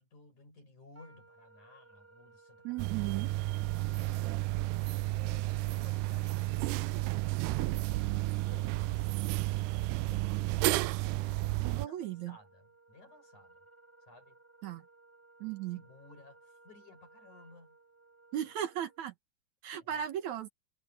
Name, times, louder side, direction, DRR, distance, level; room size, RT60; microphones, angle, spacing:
voice 1, 0.0-2.8 3.1-4.3 5.1-7.2 8.4-9.5 10.0-11.0 11.7-13.6 14.1-14.4 15.7-17.8 19.8-20.1, left 3 dB, 65° left, 8.6 m, -58 dB
Wind instrument woodwind instrument, 0.9-19.0, right 3 dB, 5° right, 2.9 m, -60 dB
voice 2, 2.6-3.3 11.6-12.4 14.6-14.8 15.4-15.8 18.3-19.1 19.6-20.5, right 11 dB, 65° right, 2.4 m, -36 dB
sound 1, 2.8-11.9, right 19 dB, 85° right, 2.1 m, -32 dB
omnidirectional pair, 3.7 m